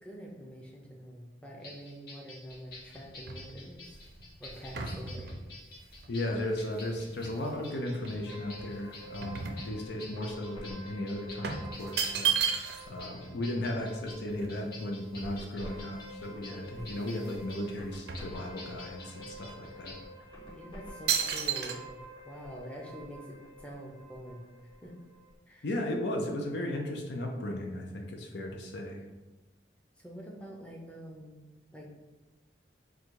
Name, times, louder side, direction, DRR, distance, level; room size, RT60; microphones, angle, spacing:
voice 1, 0.0-4.0 4.4-5.4 20.4-21.9 22.2-24.5 24.8-24.9 25.5-25.7 30.0-31.4 31.7-31.9, equal, 5° left, -1 dB, 0.6 m, -46 dB
sound 1, 1.6-20.0, left 2 dB, 60° left, 0.9 m, -50 dB
sound 2, 2.5-7.6 8.0-10.2 10.5-10.7 11.4-13.0 13.3-13.4 13.6-15.8 16.3-16.4 16.7-17.4 17.7-18.9 19.5-19.7 20.3-20.6 21.1-21.7, right 7 dB, 65° right, 0.5 m, -35 dB
voice 2, 6.1-12.3 12.9-19.9 25.6-29.0, left 1 dB, 75° left, 2 dB, 0.6 m, -35 dB
sound 3, 8.3-25.3, equal, 25° left, 1.2 m, -49 dB
3.9 x 2.3 x 4.6 m, 1.1 s
head